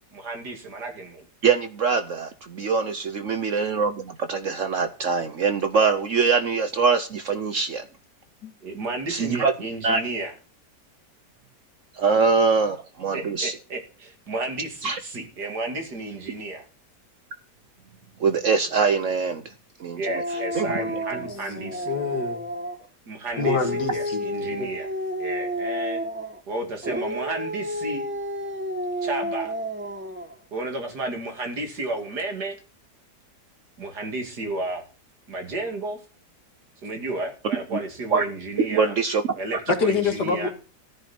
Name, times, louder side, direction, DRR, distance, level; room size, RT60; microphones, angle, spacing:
voice 1, 0.1-1.2 3.5-3.7 8.6-10.3 13.1-16.6 19.9-21.9 23.1-24.9 25.2-26.0 26.5-28.0 29.0-29.5 30.5-32.6 33.8-34.8 35.3-36.0 36.8-38.9 39.4-40.5, right 2 dB, 70° right, 3.3 m, -32 dB
voice 2, 1.4-7.8 9.1-9.5 9.8-10.0 11.9-13.5 14.8-15.0 18.2-19.5 19.8-20.0 20.5-20.7 37.7-37.8 38.1-38.2 38.6-39.2, right 5 dB, 55° right, 1.0 m, -23 dB
Dog, 20.1-22.9 23.3-26.4 26.8-30.4, equal, 10° right, 0.9 m, -31 dB
voice 3, 20.6-22.4 23.4-24.7 39.7-40.5, left 5 dB, 80° left, 2.3 m, -27 dB
14.0 x 10.5 x 4.4 m
omnidirectional pair, 1.8 m